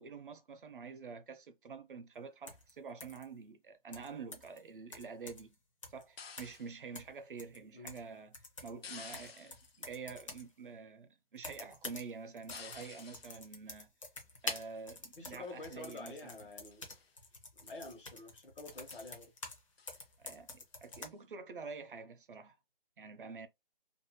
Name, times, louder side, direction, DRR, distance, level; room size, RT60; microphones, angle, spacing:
voice 1, 0.0-5.6 5.9-8.4 8.6-13.9 14.4-16.4 20.2-22.6 23.0-23.5, right 5 dB, 60° right, 0.6 m, -47 dB
sound 1, 2.5-2.7 3.0-3.2 3.9-4.6 4.9-5.5 5.8-6.0 6.4-6.6 6.9-8.1 8.3-10.5 11.4-12.1 12.4-19.6 19.9-21.1, left 3 dB, 35° left, 0.6 m, -47 dB
sound 2, 6.2-6.8 8.8-9.8 12.5-13.4 14.4-14.8 15.4-16.0 16.3-16.4 16.7-17.1 17.6-18.0 18.3-18.4 18.7-19.2 19.8-20.0 20.9-21.1, left 6 dB, 85° left, 0.6 m, -52 dB
voice 2, 15.2-16.8 17.6-19.3, left 3 dB, 60° left, 1.0 m, -48 dB
2.6 x 2.1 x 2.7 m
hypercardioid pair, 165°, 29 cm